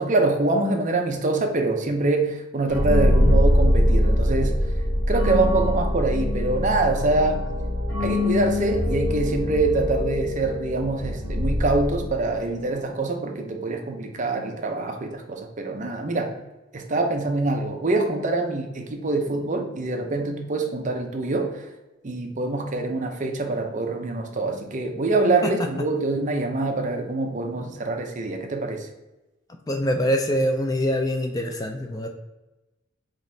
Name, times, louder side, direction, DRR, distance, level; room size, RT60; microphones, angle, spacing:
voice 1, 0.0-4.6 5.1-7.4 8.0-16.3 16.7-21.7 22.0-28.9, right 2 dB, 40° right, 4 dB, 0.6 m, -25 dB
sound 1, 2.7-12.4, left 1 dB, 85° left, 1.0 m, -23 dB
voice 2, 29.7-32.1, equal, 20° left, 3 dB, 0.3 m, -24 dB
5.1 x 3.0 x 2.7 m, 1.0 s
head